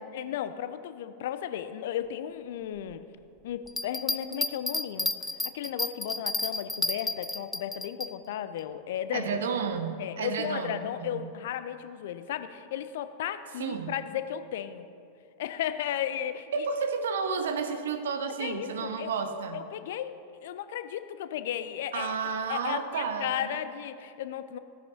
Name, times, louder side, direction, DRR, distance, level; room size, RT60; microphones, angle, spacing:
voice 1, 0.1-3.0 3.4-5.1 5.5-9.4 10.0-14.9 15.4-16.7 18.4-19.1 19.5-22.2 22.5-24.6, left 10 dB, 55° left, 11 dB, 0.5 m, -34 dB
Bell, 3.7-8.1 8.6-8.7, left 2 dB, 10° left, 0.3 m, -31 dB
voice 2, 9.1-11.3 13.6-14.0 16.5-19.6 21.9-23.6, right 5 dB, 60° right, 8 dB, 0.9 m, -32 dB
16.0 x 9.7 x 2.9 m, 2.4 s
figure-of-eight pair, 90°, 0 cm